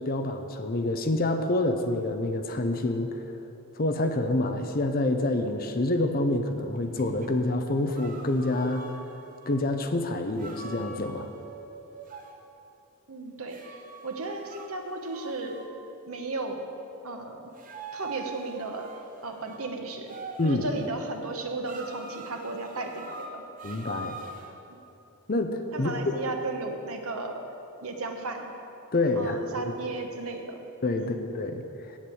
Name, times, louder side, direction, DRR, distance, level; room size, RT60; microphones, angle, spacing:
voice 1, 0.0-3.1 3.7-8.9 9.5-11.3 20.4-20.7 23.6-24.2 25.3-26.2 28.9-29.7 30.8-31.6, left 2 dB, 40° left, 6 dB, 0.7 m, -27 dB
sound 1, 6.6-9.5 10.4-12.4 13.5-15.7 17.5-19.6 20.1-20.9 21.7-24.5, right 3 dB, 35° right, 0.8 m, -44 dB
voice 2, 13.1-15.6 16.1-16.7 17.0-17.5 17.9-18.9 19.2-20.1 20.4-23.4 25.7-27.4 27.8-28.5 29.2-30.5 31.0-31.2, right 2 dB, 70° right, 3 dB, 1.1 m, -35 dB
8.1 x 7.3 x 8.5 m, 3.0 s
head